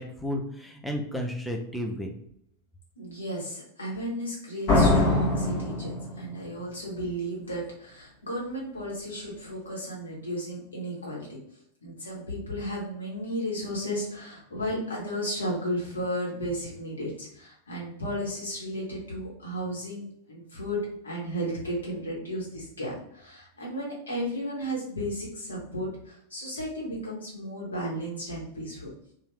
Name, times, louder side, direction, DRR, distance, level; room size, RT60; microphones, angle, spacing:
voice 1, 0.0-2.1, equal, ahead, 1 dB, 0.5 m, -32 dB
voice 2, 3.0-11.4 11.8-28.9, equal, 75° left, -3 dB, 1.1 m, -34 dB
Slam, 4.7-6.6, left 2 dB, 45° left, 0.9 m, -23 dB
2.6 x 2.4 x 3.5 m, 0.67 s
figure-of-eight pair, 90°, 0 cm